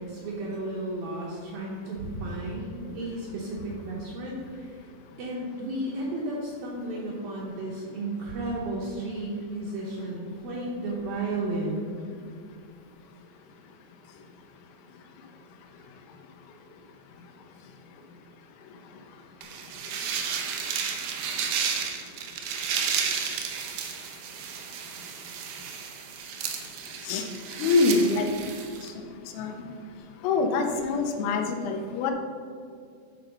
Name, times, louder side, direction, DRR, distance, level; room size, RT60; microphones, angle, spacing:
voice 1, 0.0-4.8 5.2-11.9, right 2 dB, 75° right, -3 dB, 2.2 m, -33 dB
sound 1, 19.4-28.9, right 7 dB, 90° right, 2.0 m, -32 dB
voice 2, 27.6-28.3 28.8-28.9 29.3-29.6 30.2-32.1, left 3 dB, 90° left, 4 dB, 3.2 m, -25 dB
12.0 x 4.0 x 5.2 m, 2.3 s
omnidirectional pair, 5.2 m